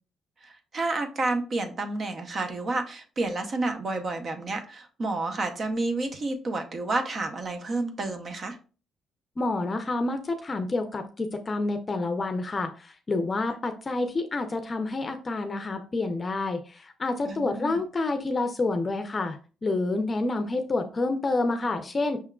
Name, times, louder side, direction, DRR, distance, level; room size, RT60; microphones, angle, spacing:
voice 1, 0.4-8.6 17.3-17.8, right 2 dB, 45° right, 6 dB, 0.7 m, -30 dB
voice 2, 9.4-22.2, left 2 dB, 30° left, 6 dB, 0.5 m, -28 dB
5.5 x 3.5 x 2.3 m, 0.36 s
cardioid pair, 90°, 0 cm